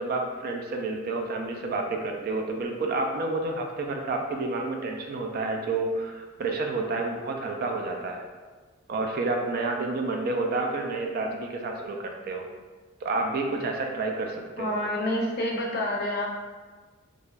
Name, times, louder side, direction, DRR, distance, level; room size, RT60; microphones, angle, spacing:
voice 1, 0.0-8.2 8.9-12.5 13.0-14.8, right 3 dB, 45° right, 2 dB, 0.3 m, -29 dB
voice 2, 14.6-16.2, left 1 dB, 50° left, -2 dB, 0.5 m, -28 dB
3.1 x 2.4 x 2.2 m, 1.4 s
head